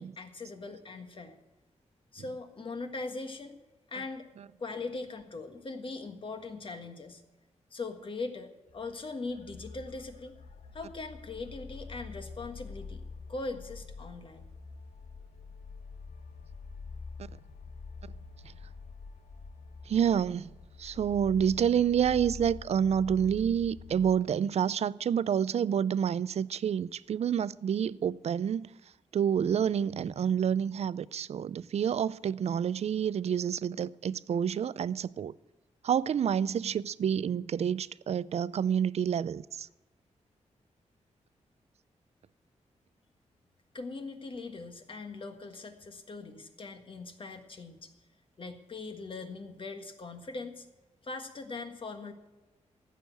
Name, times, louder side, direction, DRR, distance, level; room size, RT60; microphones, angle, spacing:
voice 1, 0.0-1.4 2.1-3.6 3.9-4.3 4.6-7.2 7.7-10.3 10.7-13.0 13.3-14.4 43.7-47.9 48.4-50.7 51.0-52.1, left 3 dB, 45° left, 1.6 m, -40 dB
sound 1, 8.7-24.3, left 4 dB, 85° left, 1.4 m, -46 dB
voice 2, 19.9-20.5 20.8-28.7 29.1-35.3 35.8-39.7, right 8 dB, 60° right, 0.4 m, -28 dB
15.0 x 6.4 x 9.1 m
wide cardioid pair, 115°, 12 cm